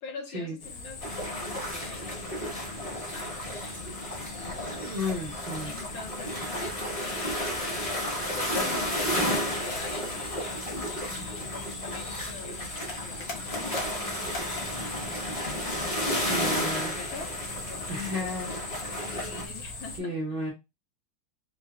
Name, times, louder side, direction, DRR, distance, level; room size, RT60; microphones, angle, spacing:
voice 1, 0.0-5.1 5.6-7.4 7.7-17.4 17.7-20.5, left 4 dB, 75° left, 1.6 m, -45 dB
sound 1, 0.6-20.0, left 3 dB, 55° left, 1.3 m, -40 dB
sound 2, 1.0-19.4, equal, 30° left, 0.7 m, -33 dB
voice 2, 4.8-5.7 16.3-17.0 17.9-18.6 20.0-20.5, left 1 dB, 75° right, 0.5 m, -33 dB
3.8 x 2.3 x 3.4 m
omnidirectional pair, 2.3 m